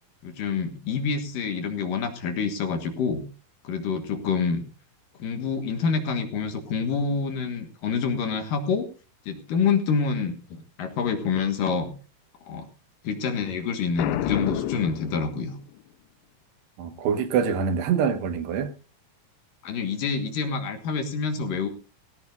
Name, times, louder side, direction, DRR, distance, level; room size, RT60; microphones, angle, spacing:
voice 1, 0.2-3.3 3.6-4.6 5.2-8.9 9.3-11.9 12.5-12.7 13.0-15.6 19.6-21.7, left 5 dB, 60° left, 2.9 m, -27 dB
Boom, 14.0-15.8, left 13 dB, 85° left, 3.0 m, -29 dB
voice 2, 16.8-18.7, right 7 dB, 80° right, 3.5 m, -25 dB
18.0 x 16.0 x 2.6 m
omnidirectional pair, 4.9 m